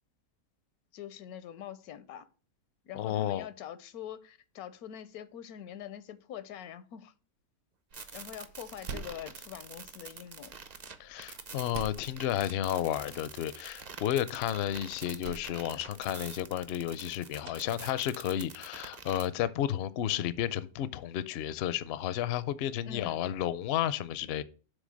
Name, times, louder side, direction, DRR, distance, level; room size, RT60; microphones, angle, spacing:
voice 1, 0.9-2.3 2.8-7.1 8.1-10.5 22.8-23.2, left 10 dB, 90° left, 1.2 m, -44 dB
voice 2, 2.9-3.5 11.0-24.4, left 11 dB, 65° left, 0.6 m, -32 dB
sound 1, 7.9-19.3, right 5 dB, 40° right, 0.6 m, -46 dB
Door, 7.9-16.9, right 5 dB, 80° right, 1.3 m, -49 dB
6.6 x 3.9 x 6.3 m
omnidirectional pair, 1.5 m